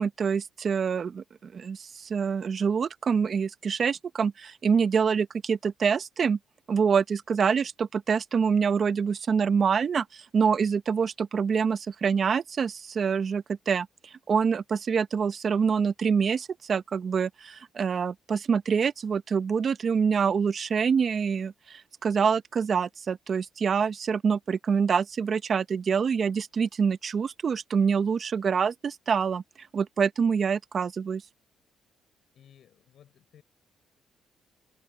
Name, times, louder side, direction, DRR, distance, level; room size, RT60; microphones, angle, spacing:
voice 1, 0.0-6.4 6.7-13.9 14.3-29.4 29.7-31.2, right 6 dB, 50° right, 0.9 m, -26 dB
voice 2, 32.3-33.4, left 9 dB, 65° left, 5.8 m, -57 dB
cardioid pair, 90°, 0 cm